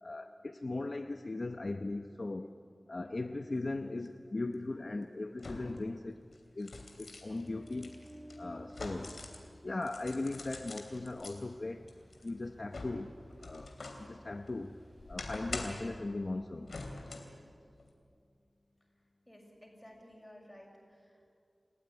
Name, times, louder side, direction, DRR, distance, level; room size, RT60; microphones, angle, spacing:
voice 1, 0.0-2.5 2.9-6.2 6.6-8.0 8.4-9.2 9.6-11.8 12.2-13.1 13.4-14.8 15.1-16.7, left 2 dB, 50° left, 7 dB, 0.8 m, -38 dB
sound 1, 4.1-4.2 5.4-5.9 6.3-9.5 9.8-11.4 11.9-14.1 14.5-16.0 16.7-17.4 17.8-17.9, left 2 dB, 85° left, 3.1 m, -45 dB
Ocean, 7.2-15.8, equal, 20° right, 6.1 m, -56 dB
voice 2, 19.3-21.3, equal, 15° left, 0 dB, 6.5 m, -55 dB
29.0 x 15.0 x 9.9 m, 2.3 s
wide cardioid pair, 70°, 0 cm